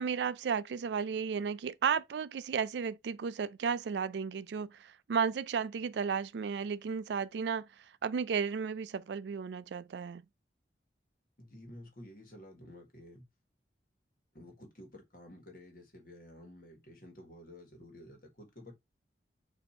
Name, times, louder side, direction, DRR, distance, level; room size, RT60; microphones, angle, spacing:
voice 1, 0.0-7.7 8.0-10.2, right 6 dB, 75° right, 0.3 m, -33 dB
voice 2, 11.4-13.2 14.3-18.7, left 1 dB, 55° left, 1.6 m, -52 dB
4.3 x 2.7 x 4.2 m
head